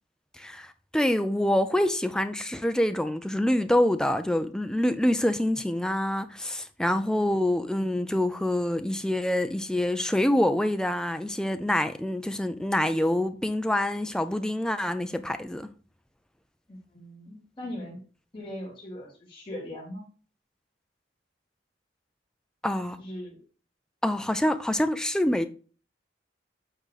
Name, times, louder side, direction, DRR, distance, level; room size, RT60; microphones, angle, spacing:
voice 1, 0.4-15.7 22.6-23.0 24.0-25.5, left 1 dB, 5° left, 0.4 m, -26 dB
voice 2, 7.0-7.3 16.7-18.0 18.3-20.1 23.0-23.4, left 1 dB, 25° left, 3.0 m, -40 dB
8.1 x 3.8 x 4.0 m
head